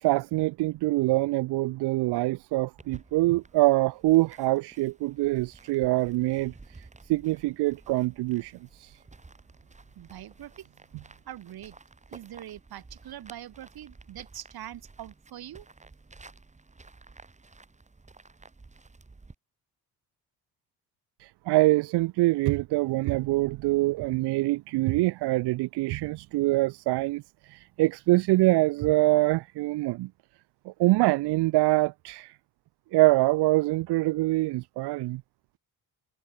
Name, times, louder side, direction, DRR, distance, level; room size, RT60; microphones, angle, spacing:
voice 1, 0.0-9.0 21.2-30.1 30.7-32.4 32.9-35.2, right 19 dB, 85° right, 0.7 m, -25 dB
sound 1, 2.8-19.3, right 3 dB, 20° right, 7.1 m, -53 dB
voice 2, 10.0-10.7 11.3-11.8 12.1-15.7, right 12 dB, 65° right, 5.3 m, -43 dB
cardioid pair, 130°, 39 cm